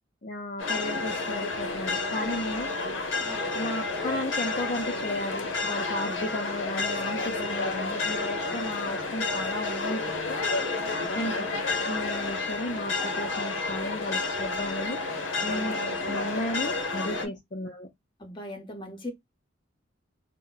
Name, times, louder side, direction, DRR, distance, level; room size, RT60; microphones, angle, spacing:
voice 1, 0.2-3.0 3.5-10.0 10.3-10.4 11.1-11.5 11.8-15.0 15.4-15.8 16.1-17.9, left 1 dB, 40° left, 0.5 m, -34 dB
sound 1, 0.6-17.3, left 3 dB, 75° left, 0.7 m, -30 dB
voice 2, 3.2-3.5 11.1-11.4 18.2-19.1, left 1 dB, 25° left, 0.9 m, -40 dB
2.1 x 2.1 x 3.8 m
head